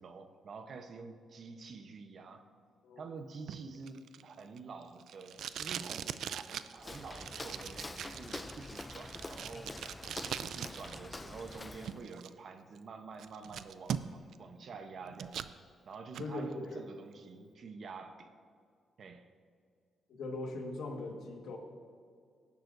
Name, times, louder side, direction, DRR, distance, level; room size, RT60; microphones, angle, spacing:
voice 1, 0.0-2.5 3.0-9.8 10.2-15.4 15.8-18.3 19.0-19.3, right 4 dB, 50° right, 7 dB, 0.9 m, -48 dB
Packing tape duct tape, 3.5-11.0 11.3-12.3 12.8-12.9 13.2-14.4 14.7-15.5 15.9-16.3, right 8 dB, 75° right, 0.4 m, -41 dB
Walk footsteps, 6.8-12.1, left 2 dB, 15° left, 0.4 m, -46 dB
voice 2, 16.2-16.8 20.1-21.6, left 2 dB, 75° left, 2 dB, 1.6 m, -40 dB
18.5 x 11.0 x 2.6 m, 2.2 s
cardioid pair, 120°, 0 cm